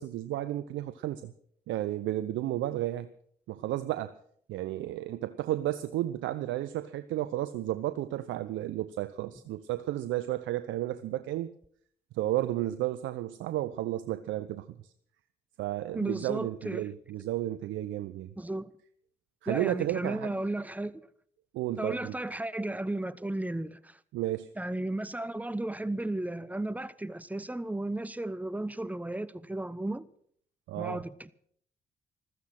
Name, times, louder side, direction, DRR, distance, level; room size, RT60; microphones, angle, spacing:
voice 1, 0.0-1.3 1.7-3.1 3.5-4.1 4.5-11.5 12.1-14.7 15.6-18.3 19.4-20.4 21.5-22.2 24.1-24.5 30.7-31.0, right 14 dB, 75° right, 0.6 m, -32 dB
voice 2, 15.9-16.9 18.4-18.7 19.5-21.1 21.8-24.0 24.6-30.0 30.8-31.3, right 1 dB, 10° right, 0.9 m, -34 dB
15.0 x 13.5 x 5.9 m
hypercardioid pair, 45°, 20 cm